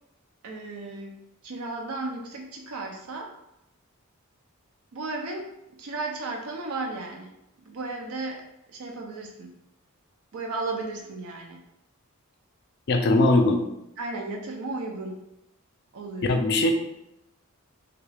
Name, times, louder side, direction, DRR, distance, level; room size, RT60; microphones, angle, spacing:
voice 1, 0.4-3.3 4.9-8.4 8.7-9.5 10.3-11.6 14.0-15.2 15.9-16.4, right 3 dB, 75° right, 1 dB, 0.5 m, -35 dB
voice 2, 12.9-13.6 16.3-16.7, left 2 dB, 50° left, 5 dB, 0.4 m, -20 dB
3.5 x 2.3 x 3.2 m, 0.86 s
head